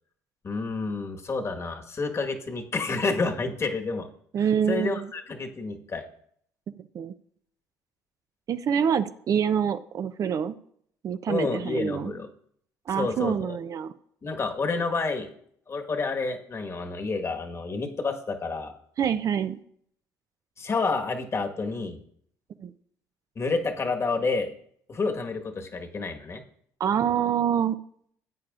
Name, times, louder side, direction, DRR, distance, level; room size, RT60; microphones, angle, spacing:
voice 1, 0.4-4.1 4.7-6.0 11.3-12.3 12.9-13.6 14.2-15.3 15.7-18.7 20.6-22.0 23.3-24.5 24.9-26.4, left 3 dB, 35° left, 4 dB, 1.4 m, -29 dB
voice 2, 4.3-5.1 6.8-7.1 8.5-10.5 11.0-12.1 12.9-13.9 19.0-19.6 22.6-22.7 26.8-27.8, right 8 dB, 50° right, 11 dB, 0.5 m, -26 dB
15.0 x 8.4 x 2.5 m, 0.64 s
supercardioid pair, 80°, 8 cm